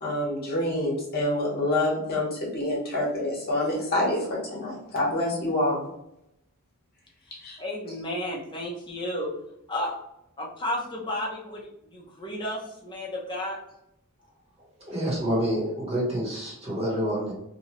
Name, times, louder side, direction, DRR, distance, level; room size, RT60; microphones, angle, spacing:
voice 1, 0.0-5.9 7.4-7.6, left 1 dB, 45° left, -4 dB, 1.1 m, -27 dB
voice 2, 7.6-9.3 9.7-10.0 10.4-13.6, left 1 dB, 20° left, -3 dB, 0.7 m, -32 dB
voice 3, 14.8-17.3, equal, 25° right, -4 dB, 1.2 m, -28 dB
2.8 x 2.3 x 3.0 m, 0.82 s
head